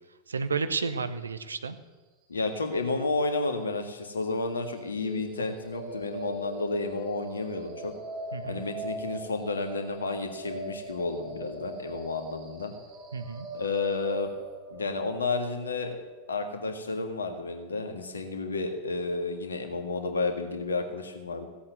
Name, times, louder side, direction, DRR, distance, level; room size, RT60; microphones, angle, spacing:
voice 1, 0.3-1.8 8.3-8.6 13.1-13.5, right 5 dB, 75° right, 11 dB, 0.9 m, -31 dB
voice 2, 2.3-7.9 8.4-12.7 13.5-14.3 14.7-15.9 16.3-21.5, left 3 dB, 70° left, 5 dB, 1.9 m, -31 dB
sound 1, 4.9-18.9, right 1 dB, 35° right, 4.6 m, -42 dB
16.0 x 8.5 x 7.9 m, 1.3 s
figure-of-eight pair, 90°, 0 cm